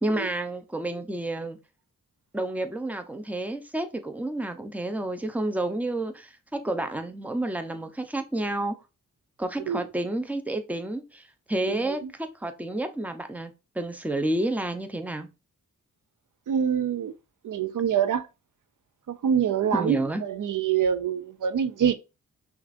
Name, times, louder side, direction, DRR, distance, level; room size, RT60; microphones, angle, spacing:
voice 1, 0.0-1.6 2.3-8.8 9.4-15.3 19.7-20.2, right 1 dB, 5° right, 0.7 m, -30 dB
voice 2, 11.6-12.0 16.5-17.1 17.4-18.2 19.1-21.9, right 8 dB, 65° right, 0.5 m, -25 dB
5.9 x 2.6 x 2.5 m
cardioid pair, 70°, 34 cm